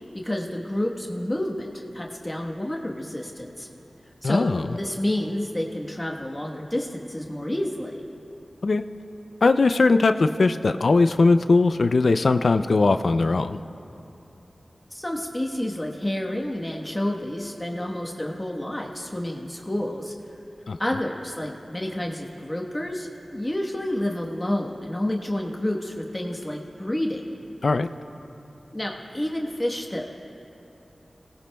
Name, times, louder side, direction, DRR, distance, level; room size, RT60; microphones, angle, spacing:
voice 1, 0.2-3.7 4.2-8.0 14.9-20.1 20.8-27.2 28.7-30.1, left 1 dB, 20° left, -1 dB, 1.2 m, -29 dB
voice 2, 4.2-4.7 8.6-8.8 9.4-13.6 20.7-20.8 27.6-27.9, left 3 dB, 75° left, 9 dB, 0.4 m, -20 dB
27.5 x 18.5 x 2.3 m, 2.9 s
wide cardioid pair, 70°, 0 cm